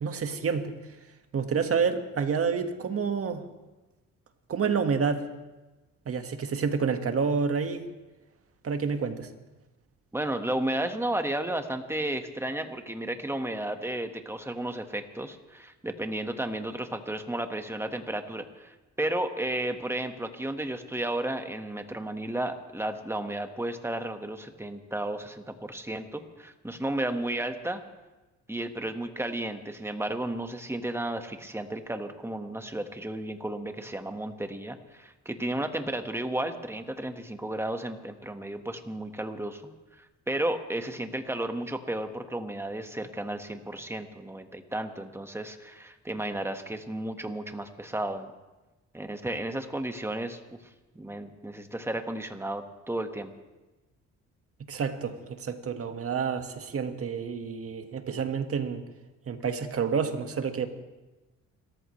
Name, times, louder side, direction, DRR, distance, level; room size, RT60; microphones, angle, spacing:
voice 1, 0.0-0.7 1.3-3.4 4.5-5.3 6.1-7.9 8.6-9.3 54.7-58.8 59.3-60.7, right 6 dB, 50° right, 6 dB, 1.7 m, -29 dB
voice 2, 10.1-27.8 28.5-39.6 40.0-48.3 48.9-50.4 50.9-53.3, right 1 dB, 10° right, 6 dB, 1.5 m, -33 dB
29.0 x 14.0 x 3.3 m, 1.1 s
cardioid pair, 90°, 30 cm